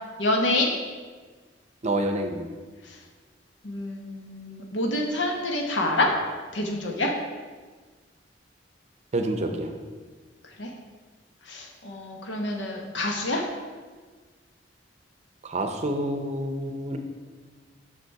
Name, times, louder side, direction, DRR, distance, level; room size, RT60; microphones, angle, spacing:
voice 1, 0.2-0.7 2.9-3.0 3.6-6.1 6.5-7.1 10.6-10.7 11.5-13.4, left 2 dB, 85° left, 1 dB, 1.1 m, -27 dB
voice 2, 1.8-2.5 9.1-9.7 15.4-17.0, right 1 dB, 40° right, 6 dB, 0.6 m, -28 dB
6.7 x 6.2 x 4.7 m, 1.4 s
head